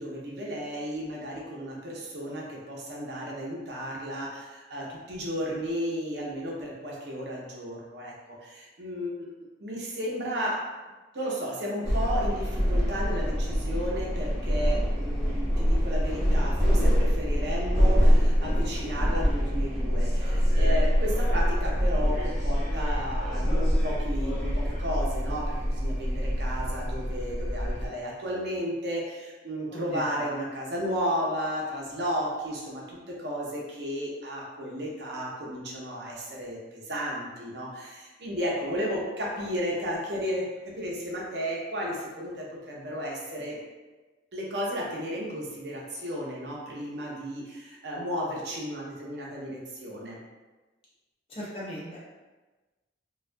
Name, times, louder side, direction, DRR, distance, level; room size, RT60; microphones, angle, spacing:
voice 1, 0.0-9.1 9.6-10.6 11.1-40.4 40.7-43.6 44.3-50.2, equal, 60° right, -4 dB, 0.6 m, -33 dB
sound 1, 11.8-27.9, equal, 5° right, 0.9 m, -25 dB
voice 2, 51.4-52.0, equal, 30° left, -6 dB, 0.5 m, -37 dB
2.2 x 2.2 x 2.5 m, 1.2 s
head